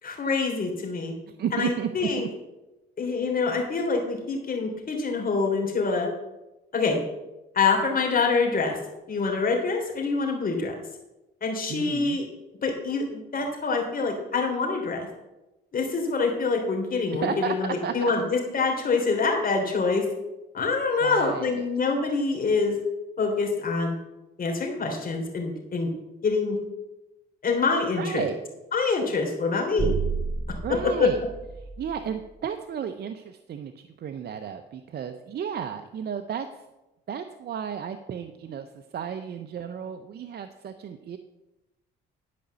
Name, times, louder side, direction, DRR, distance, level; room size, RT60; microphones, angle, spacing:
voice 1, 0.0-1.1 1.5-2.3 3.0-6.1 6.7-7.0 7.5-8.8 9.1-10.7 11.4-12.2 12.6-15.1 15.7-20.0 20.5-22.7 23.2-23.9 24.4-25.9 26.2-26.6 27.4-28.3 28.7-29.9 31.0-31.1, left 4 dB, 45° left, 1 dB, 3.1 m, -25 dB
voice 2, 1.3-2.3 11.7-12.2 17.1-17.6 17.8-18.1 21.0-21.7 28.0-28.4 30.6-31.2 31.8-36.5 37.1-38.7 38.9-41.2, right 8 dB, 55° right, 8 dB, 0.7 m, -33 dB
sound 1, 29.8-32.2, right 5 dB, 15° right, 0.7 m, -31 dB
11.5 x 5.1 x 6.8 m, 0.99 s
cardioid pair, 80°, 20 cm